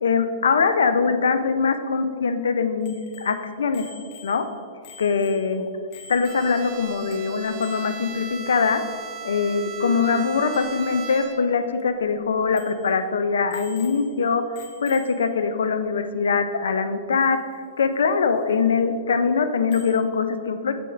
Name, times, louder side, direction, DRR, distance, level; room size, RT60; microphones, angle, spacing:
voice 1, 0.0-3.9 4.2-4.5 5.0-5.7 6.1-8.8 9.2-17.4 17.8-20.7, left 5 dB, 85° left, 10 dB, 0.4 m, -22 dB
Bicycle bell, 2.8-6.8 7.1-7.2 7.4-8.0 10.2-10.3 10.5-10.7 11.3-11.4 11.8-11.9 12.5-12.9 13.5-14.2 14.5-15.3 17.2-17.3 19.7-20.1, left 5 dB, 45° left, 0.8 m, -47 dB
Bowed string instrument, 6.2-11.7, right 6 dB, 35° right, 0.6 m, -37 dB
7.6 x 5.9 x 2.4 m, 2.1 s
hypercardioid pair, 135°, 0 cm